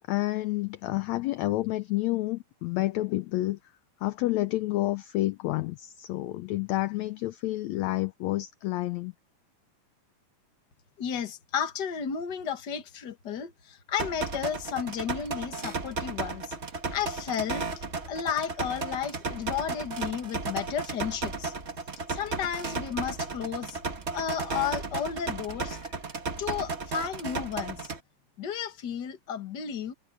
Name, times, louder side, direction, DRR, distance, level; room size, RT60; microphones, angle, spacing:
voice 1, 0.1-3.6 4.0-9.1, left 17 dB, 75° left, 1.7 m, -29 dB
voice 2, 11.0-16.6 16.9-17.7 18.0-21.5 22.1-23.8 24.1-25.9 26.4-27.9 28.4-29.9, left 8 dB, 40° left, 1.8 m, -33 dB
sound 1, 14.0-28.0, right 4 dB, 35° right, 1.1 m, -34 dB
omnidirectional pair, 3.7 m